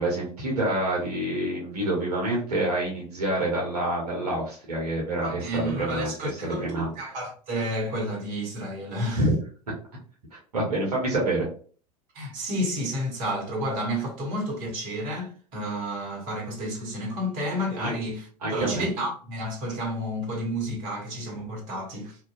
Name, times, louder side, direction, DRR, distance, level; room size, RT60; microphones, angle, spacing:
voice 1, 0.0-6.9 9.1-9.3 10.3-11.5 17.8-17.9 18.4-18.9, right 1 dB, 70° right, 1.0 m, -27 dB
voice 2, 5.2-9.2 12.1-22.2, equal, 45° right, 1.0 m, -31 dB
2.6 x 2.2 x 2.4 m
figure-of-eight pair, 80°, 21 cm